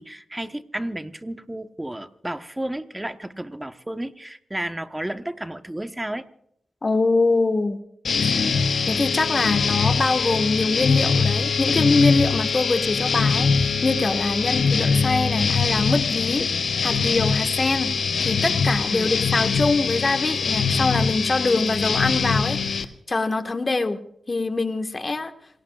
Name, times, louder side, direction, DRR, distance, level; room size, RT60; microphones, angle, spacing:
voice 1, 0.0-6.2 18.9-19.1, right 1 dB, 15° right, 9 dB, 1.2 m, -32 dB
voice 2, 6.8-7.8 8.2-8.4 8.8-16.5 16.8-17.9 18.2-24.0 24.3-25.3, left 3 dB, 40° left, 6 dB, 1.7 m, -24 dB
sound 1, 8.0-22.8, left 5 dB, 75° left, 0.9 m, -23 dB
27.5 x 18.0 x 2.5 m, 0.72 s
cardioid pair, 45°, 0 cm